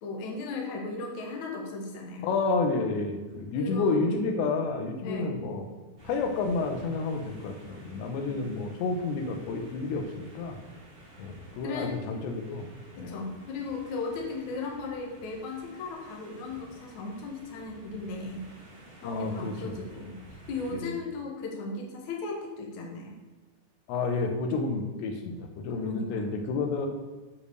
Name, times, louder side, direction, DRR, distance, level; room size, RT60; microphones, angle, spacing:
voice 1, 0.0-2.3 3.6-4.1 5.0-5.4 8.3-8.5 11.6-12.0 13.0-18.4 19.0-23.2 25.8-26.3, left 3 dB, 55° left, 0 dB, 2.4 m, -37 dB
voice 2, 2.2-5.6 6.0-10.6 11.2-12.7 12.9-13.1 19.0-19.9 20.7-20.9 23.9-26.9, left 3 dB, 80° left, 4 dB, 3.3 m, -30 dB
sound 1, 6.0-20.7, right 1 dB, 25° right, 1.1 m, -52 dB
9.5 x 5.3 x 6.7 m, 1.2 s
omnidirectional pair, 5.0 m